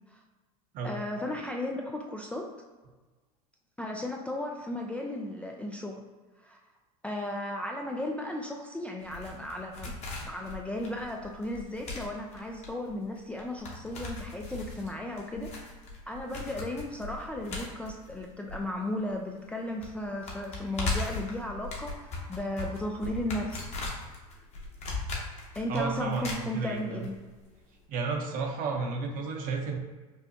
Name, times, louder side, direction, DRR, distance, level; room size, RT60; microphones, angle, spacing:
voice 1, 0.8-2.5 3.8-6.0 6.4-6.6 7.0-15.5 16.1-23.7 25.6-27.2, left 1 dB, 5° left, 0 dB, 0.3 m, -35 dB
sound 1, 9.0-19.1 19.4-19.5 19.8-27.1 27.3-27.4, left 3 dB, 35° left, 1.1 m, -38 dB
voice 2, 25.7-27.0 27.9-29.8, right 4 dB, 45° right, 3 dB, 0.8 m, -32 dB
5.4 x 2.1 x 2.7 m, 1.3 s
hypercardioid pair, 90°, 19 cm